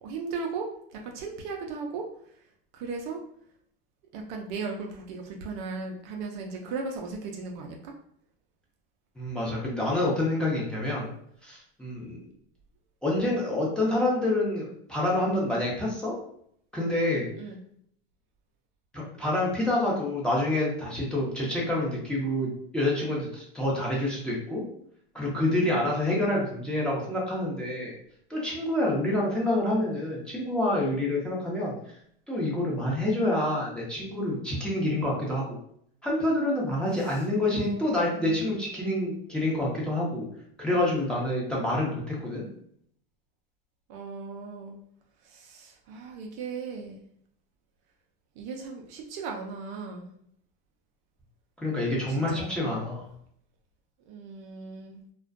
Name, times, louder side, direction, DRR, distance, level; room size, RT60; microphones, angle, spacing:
voice 1, 0.0-2.5 2.7-3.2 4.1-7.9 11.9-12.2 17.4-17.6 37.0-37.3 37.5-38.4 43.9-44.8 45.2-47.0 48.4-50.1 52.1-52.8 54.1-55.0, right 4 dB, 55° right, 2 dB, 0.5 m, -37 dB
voice 2, 9.2-11.1 11.4-12.2 13.0-16.1 16.7-17.3 18.9-24.6 25.1-28.0 28.3-31.7 32.3-35.5 36.0-40.3 40.6-42.5 51.6-53.0, left 1 dB, 5° left, -5 dB, 0.7 m, -27 dB
2.4 x 2.2 x 2.4 m, 0.67 s
supercardioid pair, 115°, 29 cm